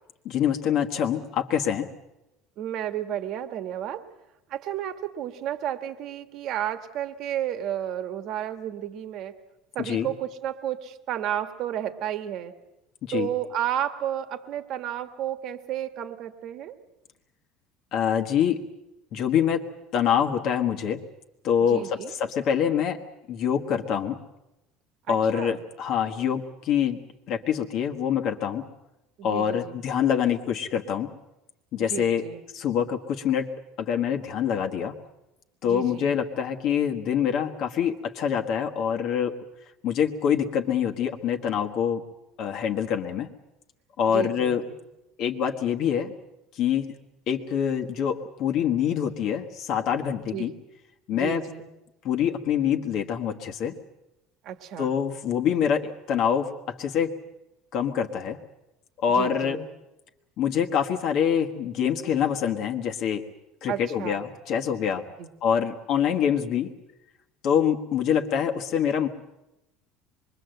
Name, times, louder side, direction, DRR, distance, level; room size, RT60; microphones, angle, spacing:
voice 1, 0.2-1.9 9.8-10.1 13.0-13.3 17.9-18.6 19.1-19.7 19.9-21.0 21.4-23.0 23.3-24.1 25.1-27.0 27.3-28.7 29.2-31.1 31.7-32.2 32.5-33.5 33.8-34.9 35.6-39.3 39.8-42.0 42.4-43.3 44.0-44.6 45.2-46.1 46.5-46.9 47.3-50.5 51.1-51.4 52.0-53.7 54.8-57.1 57.7-58.4 59.0-59.6 60.4-63.2 63.6-65.0 65.4-66.7 67.4-69.1, left 8 dB, 40° left, 3 dB, 1.4 m, -25 dB
voice 2, 2.6-4.0 4.5-9.3 9.7-12.5 13.1-16.7 21.7-22.1 25.1-25.6 29.2-29.8 31.8-32.4 35.6-36.1 44.1-44.6 50.3-50.5 51.1-51.7 54.4-54.9 59.1-59.6 63.7-64.2 65.2-65.3, right 11 dB, 40° right, 9 dB, 1.6 m, -32 dB
25.5 x 22.5 x 7.9 m, 0.94 s
cardioid pair, 175°, 0 cm